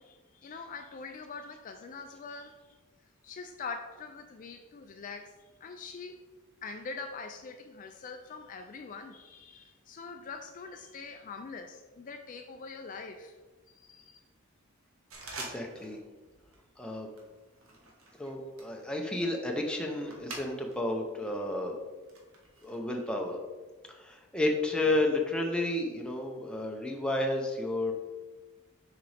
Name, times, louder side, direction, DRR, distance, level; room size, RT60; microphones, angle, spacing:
voice 1, 0.0-2.6 3.2-5.3 5.6-6.2 6.6-13.4 13.7-14.2, left 4 dB, 40° left, 5 dB, 0.3 m, -43 dB
sound 1, 15.1-16.0 16.3-16.7 17.2-20.9 21.3-22.8, right 2 dB, 75° right, 1.3 m, -47 dB
voice 2, 15.4-16.0 16.8-17.1 18.2-21.8 22.6-23.4 23.9-27.9, left 2 dB, 5° left, 1 dB, 0.7 m, -31 dB
6.6 x 4.9 x 3.4 m, 1.3 s
head